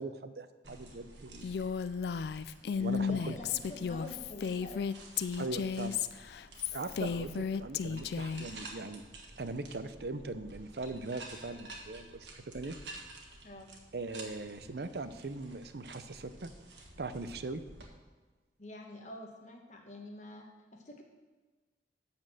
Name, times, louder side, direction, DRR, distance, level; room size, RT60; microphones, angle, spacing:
voice 1, 0.0-1.5 2.7-3.4 5.4-6.0 6.7-9.0 9.4-12.8 13.9-16.5 17.0-17.6, right 3 dB, 65° right, 11 dB, 0.6 m, -40 dB
sound 1, 0.6-17.9, right 2 dB, 85° right, 1.6 m, -51 dB
Female speech woman speaking, 1.4-8.5, left 6 dB, 65° left, 0.3 m, -34 dB
voice 2, 3.0-4.9 13.4-13.7 18.6-20.5 20.7-21.0, left 1 dB, 45° left, 1 dB, 1.1 m, -47 dB
11.0 x 4.4 x 7.6 m, 1.3 s
head